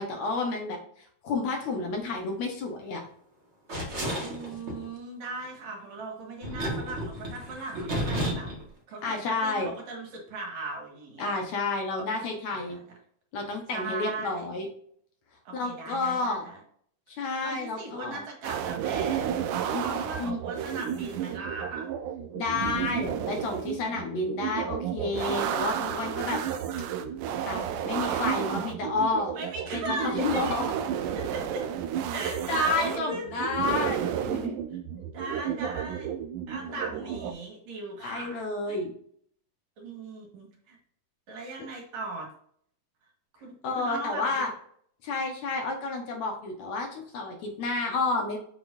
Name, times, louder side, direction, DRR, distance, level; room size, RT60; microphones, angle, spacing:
voice 1, 0.0-3.0 9.0-9.7 11.2-12.8 13.3-14.7 15.5-16.4 17.2-18.2 19.7-19.8 20.2-20.4 22.4-26.4 27.5-29.3 29.7-30.6 32.1-34.6 36.7-36.8 38.0-38.9 43.6-44.5 45.0-48.4, left 3 dB, 65° left, 2 dB, 2.3 m, -30 dB
sound 1, 3.7-4.9 6.4-8.6, equal, 30° right, 1.3 m, -32 dB
voice 2, 4.2-8.5 8.9-11.4 12.5-12.8 13.7-14.5 15.5-16.6 17.2-19.3 19.7-21.9 29.3-30.6 31.1-31.6 32.1-33.9 34.7-36.1 36.5-38.4 38.7-38.8 39.8-40.8 41.3-42.3 43.4-44.4, right 3 dB, 65° right, -1 dB, 3.0 m, -38 dB
sound 2, 18.4-37.3, right 9 dB, 80° right, 2.1 m, -32 dB
7.2 x 6.0 x 2.6 m, 0.63 s
omnidirectional pair, 3.6 m